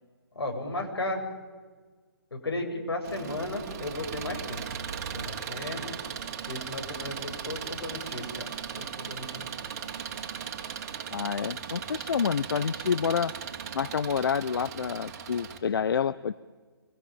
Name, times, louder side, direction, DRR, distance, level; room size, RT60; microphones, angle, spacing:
voice 1, 0.3-1.2 2.3-4.6 5.1-6.0 6.4-8.5 8.7-9.5, left 2 dB, 85° left, 3 dB, 7.9 m, -35 dB
Engine, 3.0-15.6, right 7 dB, 40° right, 3.4 m, -38 dB
voice 2, 11.1-13.3 13.7-16.4, left 7 dB, 65° left, 18 dB, 0.7 m, -28 dB
26.0 x 22.5 x 9.1 m, 1.4 s
hypercardioid pair, 155°, 13 cm